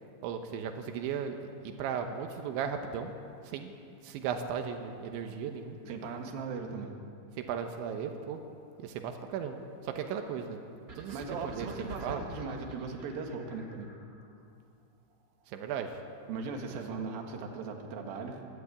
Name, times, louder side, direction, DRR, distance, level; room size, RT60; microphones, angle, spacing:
voice 1, 0.2-3.1 3.4-3.7 4.0-5.8 7.4-8.4 8.8-9.6 9.8-10.6 11.0-12.2 15.5-16.0 16.9-17.0, right 7 dB, 90° right, 5 dB, 3.5 m, -36 dB
voice 2, 5.8-6.9 11.1-13.9 16.3-18.5, right 4 dB, 60° right, 2 dB, 3.4 m, -38 dB
sound 1, 10.9-14.3, right 2 dB, 40° right, 1.3 m, -46 dB
24.0 x 13.0 x 8.7 m, 2.6 s
omnidirectional pair, 5.2 m